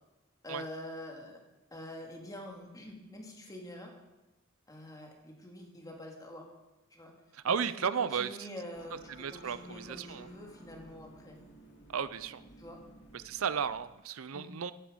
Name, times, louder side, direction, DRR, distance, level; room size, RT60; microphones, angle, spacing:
voice 1, 0.4-1.4 1.7-3.9 4.7-6.5 6.9-7.1 7.4-11.4 12.6-12.8 14.3-14.5, left 1 dB, 20° left, 1 dB, 2.3 m, -46 dB
voice 2, 7.3-8.3 9.2-10.3 11.9-12.4 13.1-14.7, right 7 dB, 85° right, 15 dB, 0.5 m, -34 dB
sound 1, 8.7-13.9, right 1 dB, 60° left, 2.4 m, -55 dB
15.5 x 10.0 x 5.2 m, 1.1 s
head